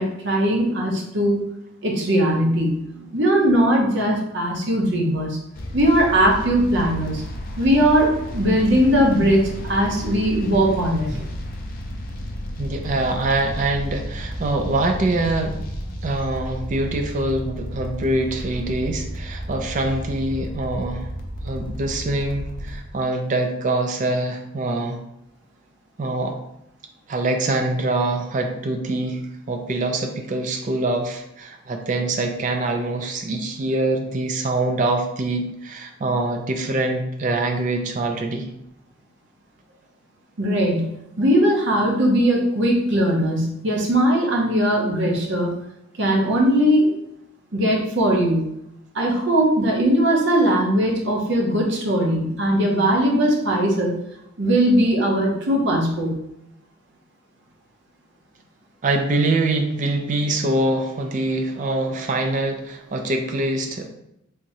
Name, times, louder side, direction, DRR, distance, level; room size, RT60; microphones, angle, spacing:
voice 1, 0.0-1.4 1.8-5.4 5.7-7.2 7.6-11.3 40.4-40.9 41.2-45.5 46.0-46.9 47.5-48.4 48.9-54.0 54.4-56.2, equal, 55° right, -1 dB, 0.7 m, -19 dB
sound 1, 5.5-22.8, equal, 40° left, 0.4 m, -32 dB
voice 2, 12.6-15.6 16.0-21.1 21.4-25.0 26.0-26.4 27.1-29.2 29.5-38.5 58.8-63.9, right 2 dB, 35° right, 4 dB, 0.3 m, -24 dB
3.5 x 2.9 x 2.6 m, 0.81 s
head